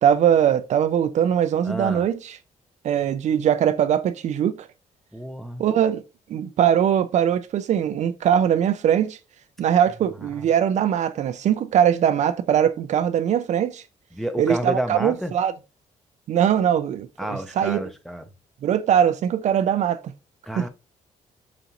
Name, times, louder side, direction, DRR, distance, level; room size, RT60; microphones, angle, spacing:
voice 1, 0.0-2.4 2.8-4.7 5.6-6.0 6.3-9.2 9.6-13.8 14.4-15.5 16.3-17.8 18.6-20.1 20.6-20.7, right 9 dB, 60° right, 0.4 m, -21 dB
voice 2, 1.7-2.1 5.1-5.6 10.2-10.4 14.1-15.3 17.2-18.2 20.4-20.7, equal, ahead, 0.6 m, -30 dB
5.0 x 2.5 x 2.8 m
cardioid pair, 100°, 13 cm